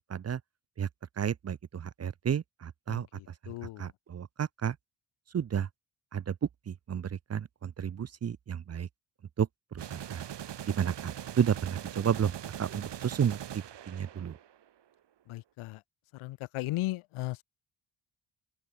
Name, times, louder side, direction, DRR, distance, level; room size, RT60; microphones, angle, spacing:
voice 1, 0.1-0.4 0.8-0.9 1.2-3.1 3.8-4.8 5.3-5.7 6.1-6.3 6.7-8.9 9.4-9.5 9.7-10.2 10.7-12.3 12.6-14.3, right 8 dB, 30° right, 0.6 m, -32 dB
voice 2, 2.9-3.9 15.3-15.8 16.1-17.4, left 18 dB, 85° left, 0.7 m, -37 dB
sound 1, 9.8-14.6, right 10 dB, 60° right, 1.3 m, -41 dB
open air
supercardioid pair, 60°, 48 cm